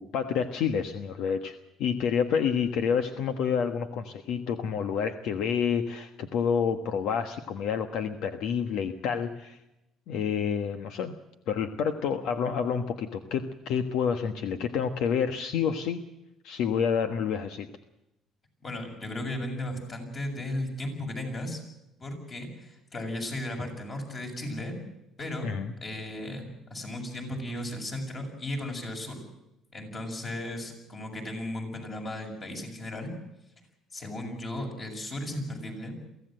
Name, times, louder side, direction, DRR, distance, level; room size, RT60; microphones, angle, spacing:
voice 1, 0.0-9.6 10.1-11.1 11.5-16.0 16.4-17.7 25.4-25.7, left 7 dB, 70° left, 8 dB, 1.4 m, -28 dB
voice 2, 18.6-21.6 22.0-24.8 25.2-25.5 25.8-29.2 29.7-33.1 33.9-36.0, left 1 dB, 30° left, 3 dB, 7.1 m, -35 dB
23.5 x 16.5 x 7.8 m, 0.92 s
cardioid pair, 120°, 0 cm